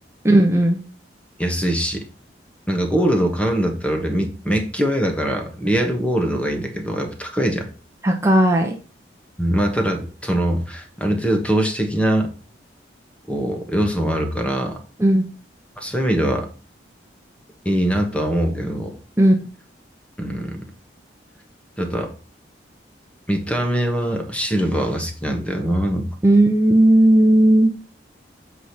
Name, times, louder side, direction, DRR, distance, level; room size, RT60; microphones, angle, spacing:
voice 1, 0.2-0.8 8.0-8.7 15.0-15.3 19.2-19.3 26.2-27.7, right 1 dB, 15° right, 1 dB, 1.0 m, -15 dB
voice 2, 1.4-2.1 2.7-7.7 9.4-12.3 13.3-14.8 15.8-16.5 17.6-19.0 20.2-20.7 21.8-22.1 23.3-26.1, right 1 dB, 5° left, 4 dB, 1.3 m, -22 dB
7.8 x 5.0 x 4.2 m, 0.37 s
head